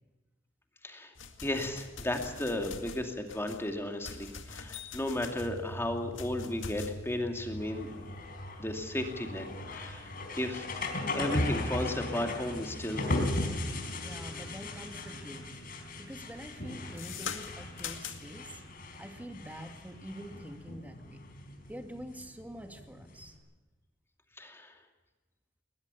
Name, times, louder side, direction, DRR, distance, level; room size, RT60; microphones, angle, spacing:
sound 1, 1.2-14.5 14.9-15.3 15.6-18.5, left 6 dB, 75° left, 2.2 m, -45 dB
voice 1, 1.4-7.9 8.6-9.4 9.7-10.1 10.4-10.6 11.1-13.3 24.4-24.7, left 1 dB, 15° left, 4 dB, 2.5 m, -34 dB
sound 2, 5.4-23.4, left 1 dB, 50° left, 4.3 m, -38 dB
voice 2, 14.0-15.5 16.0-18.6 19.0-21.2 21.7-23.3, equal, 10° right, 5 dB, 2.2 m, -45 dB
21.5 x 20.5 x 7.0 m, 1.2 s
head